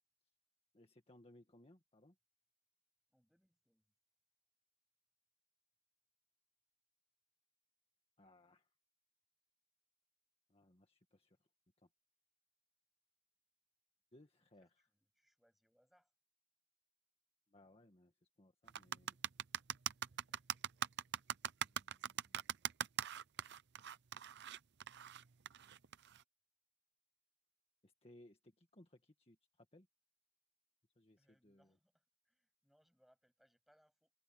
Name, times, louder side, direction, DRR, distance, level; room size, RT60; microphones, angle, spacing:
voice 1, 0.7-2.2 8.2-8.7 10.5-11.4 11.8-11.9 14.1-14.7 17.5-19.2 21.6-22.5 27.8-29.9 31.0-31.8, left 1 dB, 30° left, 1.8 m, -65 dB
voice 2, 3.1-3.9 14.6-16.1 19.9-20.9 31.2-34.1, equal, ahead, 7.8 m, -77 dB
sound 1, 18.7-26.2, right 10 dB, 55° right, 0.6 m, -41 dB
head